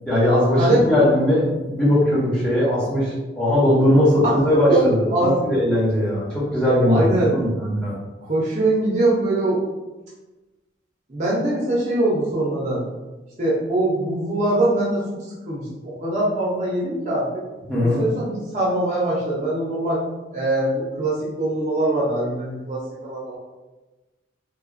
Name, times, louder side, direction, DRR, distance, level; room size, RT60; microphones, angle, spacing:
voice 1, 0.1-7.9 17.7-18.0, left 1 dB, 5° left, -9 dB, 0.8 m, -19 dB
voice 2, 6.8-7.3 8.3-9.6 11.1-12.8 13.4-15.2 15.5-17.4 17.8-20.0 20.3-23.4, right 1 dB, 40° right, -6 dB, 0.6 m, -22 dB
3.0 x 2.3 x 2.4 m, 1.1 s
head